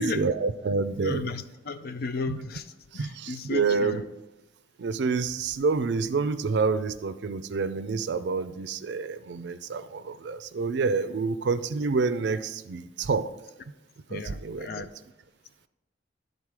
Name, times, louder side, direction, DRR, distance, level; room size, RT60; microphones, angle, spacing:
voice 1, 0.0-1.2 2.3-2.4 2.9-4.0 4.8-13.3 14.1-14.9, right 4 dB, 70° right, 13 dB, 0.4 m, -28 dB
voice 2, 1.0-2.7 2.9-4.1 14.1-14.9, left 3 dB, 55° left, 11 dB, 0.4 m, -34 dB
10.5 x 4.0 x 4.7 m, 0.97 s
head